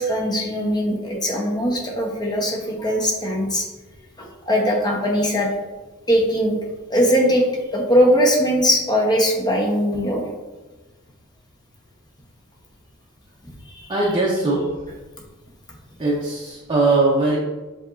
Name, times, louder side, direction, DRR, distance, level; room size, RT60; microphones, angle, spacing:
voice 1, 0.0-3.7 4.2-5.5 6.1-6.6 6.9-7.4 7.7-10.2 13.7-13.9, equal, 20° left, 0 dB, 0.8 m, -20 dB
voice 2, 13.9-14.6 16.0-17.4, right 2 dB, 20° right, -5 dB, 0.6 m, -20 dB
7.2 x 2.9 x 2.4 m, 1.2 s
head